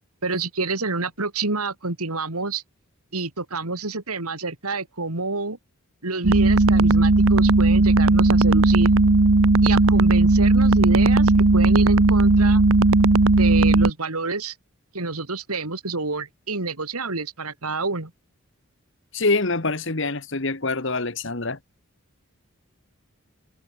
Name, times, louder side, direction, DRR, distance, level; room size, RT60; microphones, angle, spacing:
voice 1, 0.2-2.6 3.1-5.6 6.0-8.9 9.6-12.6 13.3-14.5 14.9-18.1, right 3 dB, 90° right, 3.0 m, -28 dB
sound 1, 6.2-13.9, right 2 dB, 65° right, 0.9 m, -16 dB
voice 2, 19.1-21.6, left 3 dB, 55° left, 1.6 m, -25 dB
head